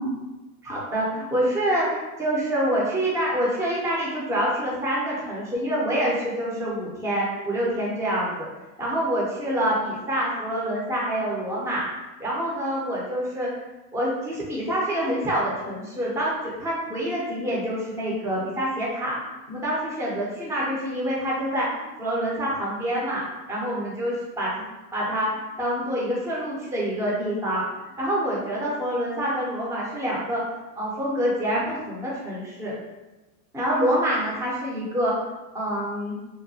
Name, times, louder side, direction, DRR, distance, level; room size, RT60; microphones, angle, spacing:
voice 1, 0.6-8.5 8.8-11.9 12.2-13.5 13.9-19.1 19.5-23.2 23.5-24.6 24.9-27.6 28.0-30.4 30.8-32.7 33.5-35.1 35.5-36.2, equal, 5° right, -5 dB, 0.4 m, -26 dB
2.8 x 2.2 x 2.6 m, 1.1 s
supercardioid pair, 135°, 42 cm